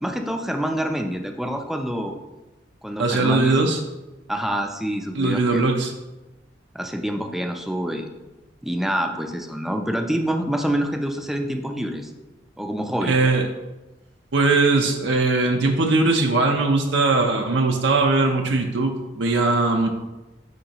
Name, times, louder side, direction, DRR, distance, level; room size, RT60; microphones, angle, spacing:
voice 1, 0.0-2.2 2.8-3.6 4.3-5.7 6.7-8.1 8.6-12.1 12.6-13.2, equal, ahead, 4 dB, 0.5 m, -26 dB
voice 2, 3.0-3.8 5.1-5.9 13.0-13.4 14.3-19.9, right 3 dB, 65° right, 2 dB, 0.6 m, -20 dB
10.0 x 3.8 x 2.9 m, 1.1 s
head